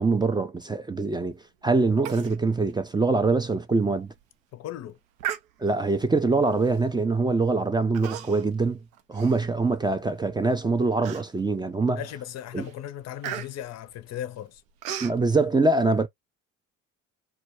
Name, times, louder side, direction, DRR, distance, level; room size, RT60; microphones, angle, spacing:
voice 1, 0.0-1.4 1.6-4.1 5.6-8.8 9.1-12.0 12.5-12.7 15.0-16.1, right 3 dB, 10° right, 0.3 m, -24 dB
Human voice, 2.1-2.4 2.7-2.8 3.3-3.4 4.0-4.2 5.2-5.9 6.7-6.9 7.9-8.6 8.9-10.0 10.4-10.5 11.0-11.6 12.1-12.3 12.6-15.2, right 10 dB, 85° right, 0.6 m, -37 dB
voice 2, 4.5-5.0 11.9-14.6, left 11 dB, 40° left, 0.5 m, -37 dB
2.3 x 2.1 x 2.9 m
hypercardioid pair, 60°, 40 cm